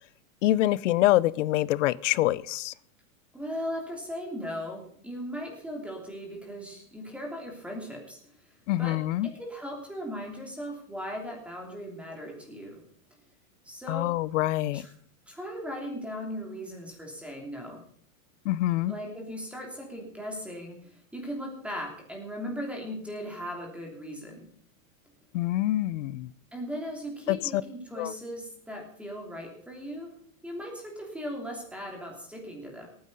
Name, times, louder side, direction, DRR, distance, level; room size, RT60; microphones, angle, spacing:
voice 1, 0.4-2.7 8.7-9.3 13.9-14.8 18.4-18.9 25.3-26.3 27.3-27.6 28.0-28.1, left 15 dB, 65° left, 21 dB, 0.7 m, -25 dB
voice 2, 3.3-12.8 13.6-14.1 14.7-14.9 15.3-17.8 18.9-24.4 26.5-30.1 30.4-32.9, equal, 5° right, 1 dB, 3.0 m, -38 dB
18.0 x 9.7 x 5.5 m, 0.63 s
supercardioid pair, 160°, 41 cm